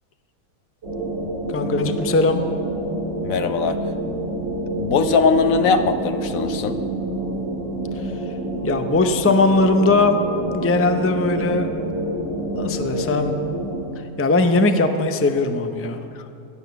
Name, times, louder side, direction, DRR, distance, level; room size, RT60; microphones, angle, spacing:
sound 1, 0.8-13.8, right 1 dB, 65° right, 3.1 m, -27 dB
voice 1, 1.5-2.4 8.6-10.2 10.5-11.7 12.5-13.3 14.2-16.0, left 3 dB, 15° left, 7 dB, 0.5 m, -19 dB
voice 2, 3.2-3.8 4.8-6.8, left 5 dB, 70° left, 9 dB, 1.2 m, -20 dB
18.0 x 11.5 x 6.9 m, 2.8 s
omnidirectional pair, 1.5 m